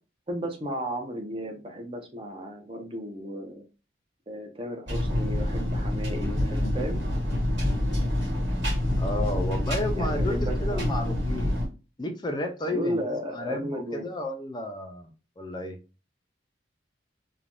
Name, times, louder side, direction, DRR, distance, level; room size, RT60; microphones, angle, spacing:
voice 1, 0.3-3.6 4.3-7.0 9.9-10.9 12.7-14.0, equal, 30° right, 3 dB, 0.6 m, -34 dB
sound 1, 4.9-11.7, left 1 dB, 65° right, 1.5 m, -27 dB
voice 2, 9.0-11.6 12.0-13.0 13.3-15.8, left 1 dB, 25° left, 5 dB, 0.4 m, -32 dB
3.2 x 2.2 x 2.5 m, 0.32 s
head